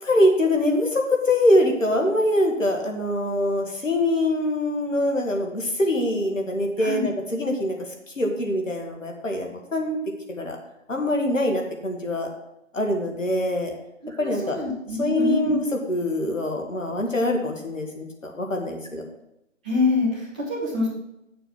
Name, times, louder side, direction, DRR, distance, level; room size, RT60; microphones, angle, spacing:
voice 1, 0.0-7.8 8.2-10.0 10.3-10.6 10.9-12.3 12.7-13.7 14.2-14.6 15.0-19.0, left 1 dB, 70° left, 2 dB, 2.2 m, -24 dB
voice 2, 14.0-15.6 19.6-20.9, left 2 dB, 5° right, -7 dB, 0.8 m, -25 dB
7.5 x 6.7 x 6.3 m, 0.85 s
figure-of-eight pair, 150°, 40 cm